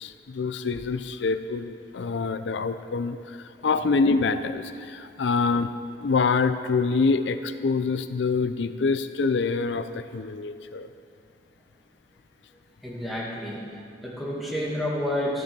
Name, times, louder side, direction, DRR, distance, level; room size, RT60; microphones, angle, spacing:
voice 1, 0.0-5.7 6.0-10.9, left 4 dB, 80° left, 11 dB, 0.5 m, -26 dB
voice 2, 12.8-15.4, left 1 dB, ahead, -5 dB, 2.2 m, -30 dB
13.0 x 10.5 x 6.1 m, 2.4 s
head